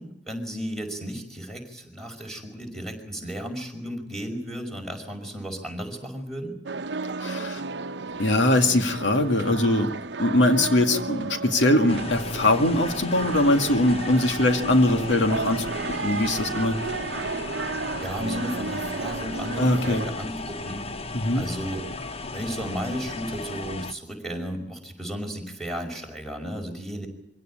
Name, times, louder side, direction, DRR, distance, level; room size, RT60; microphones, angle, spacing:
voice 1, 0.0-6.5 18.0-20.8 21.3-21.9 22.3-27.1, equal, 5° left, 3 dB, 5.5 m, -34 dB
sound 1, 6.7-20.1, right 4 dB, 70° right, 0.9 m, -33 dB
voice 2, 7.2-7.6 8.2-9.9 10.2-15.7 16.0-16.8 19.6-20.0 21.1-21.5, left 1 dB, 85° left, 6 dB, 2.1 m, -21 dB
sound 2, 11.9-23.9, left 3 dB, 35° left, 1.0 m, -35 dB
25.0 x 17.0 x 8.7 m, 0.78 s
head